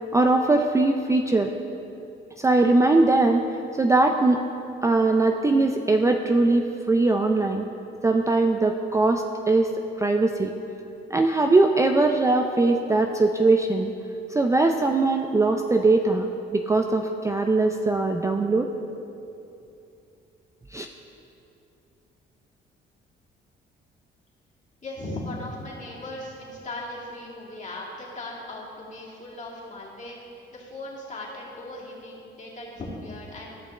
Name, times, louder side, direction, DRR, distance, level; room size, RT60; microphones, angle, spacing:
voice 1, 0.1-1.5 2.4-3.5 3.8-4.4 4.8-7.6 8.0-10.5 11.1-13.9 14.3-18.7 20.7-20.9, right 2 dB, 15° right, 4 dB, 0.4 m, -21 dB
voice 2, 24.8-33.5, left 1 dB, 40° left, -5 dB, 2.2 m, -38 dB
13.5 x 6.1 x 3.2 m, 2.8 s
cardioid pair, 90°, 20 cm